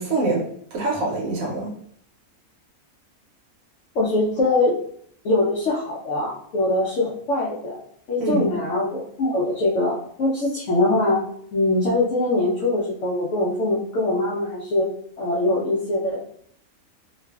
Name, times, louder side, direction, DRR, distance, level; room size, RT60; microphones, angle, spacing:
voice 1, 0.0-1.7 8.2-8.5, right 2 dB, 75° right, -2 dB, 1.0 m, -25 dB
voice 2, 3.9-4.8 5.2-7.8 8.1-11.2 11.5-14.9 15.2-16.3, left 2 dB, 65° left, -5 dB, 0.8 m, -22 dB
2.5 x 2.3 x 2.2 m, 0.66 s
omnidirectional pair, 1.5 m